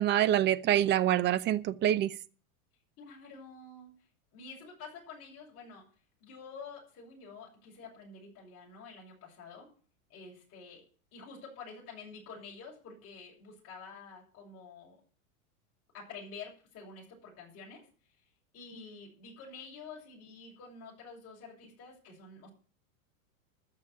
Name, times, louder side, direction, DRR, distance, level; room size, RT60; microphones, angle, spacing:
voice 1, 0.0-2.1, right 11 dB, 25° right, 0.7 m, -26 dB
voice 2, 3.0-3.9 4.3-5.9 6.2-9.7 10.1-10.8 11.1-15.0 15.9-17.9 18.5-22.5, left 4 dB, 35° left, 7.0 m, -48 dB
13.5 x 6.9 x 8.4 m
supercardioid pair, 140°, 43 cm